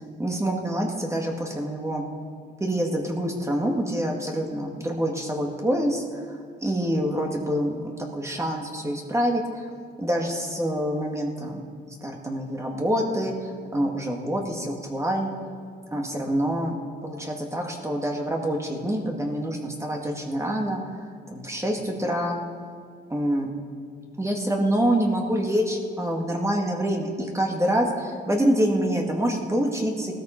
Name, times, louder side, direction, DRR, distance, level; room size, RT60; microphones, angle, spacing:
voice 1, 0.2-2.0 2.6-9.7 10.0-11.6 12.0-15.3 15.9-20.8 21.3-22.4 23.1-23.5 24.2-30.1, equal, 15° right, 1 dB, 1.8 m, -26 dB
17.5 x 13.5 x 4.5 m, 2.1 s
cardioid pair, 90°, 20 cm